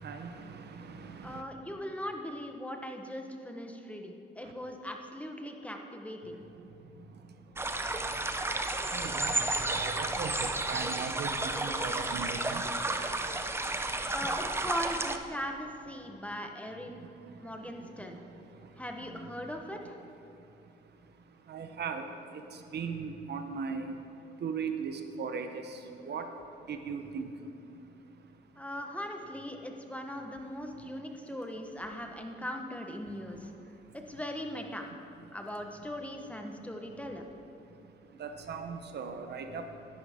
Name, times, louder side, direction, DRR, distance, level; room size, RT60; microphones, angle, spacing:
voice 1, 0.0-1.4 4.4-4.5 6.3-8.3 8.9-14.2 16.0-16.3 16.7-28.7 30.7-31.4 33.0-34.0 35.2-35.4 36.5-36.9 37.6-40.0, right 5 dB, 55° right, 6 dB, 0.8 m, -41 dB
voice 2, 1.2-6.4 14.1-17.0 17.4-18.3 18.8-20.0 28.6-33.5 34.1-34.8 35.3-37.3, equal, 5° left, 3 dB, 1.0 m, -39 dB
sound 1, 7.6-15.2, right 2 dB, 10° right, 0.6 m, -32 dB
11.5 x 11.0 x 3.6 m, 2.8 s
cardioid pair, 90°, 20 cm